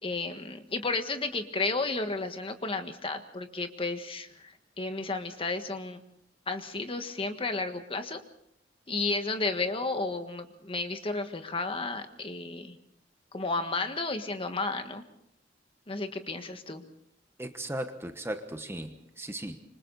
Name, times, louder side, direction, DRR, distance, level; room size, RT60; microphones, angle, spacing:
voice 1, 0.0-6.0 6.5-8.2 8.9-12.8 13.3-15.0 15.9-16.8, left 3 dB, 30° left, 7 dB, 1.6 m, -32 dB
voice 2, 17.4-19.6, right 1 dB, 15° right, 7 dB, 1.2 m, -37 dB
27.0 x 25.0 x 4.1 m, 0.71 s
head